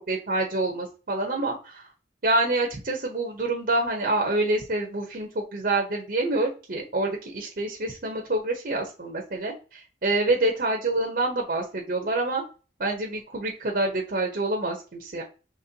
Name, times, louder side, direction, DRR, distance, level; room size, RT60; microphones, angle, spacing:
voice 1, 0.1-1.9 2.2-12.4 12.8-15.2, right 2 dB, 50° right, 1 dB, 0.8 m, -27 dB
5.2 x 3.2 x 2.7 m, 0.35 s
head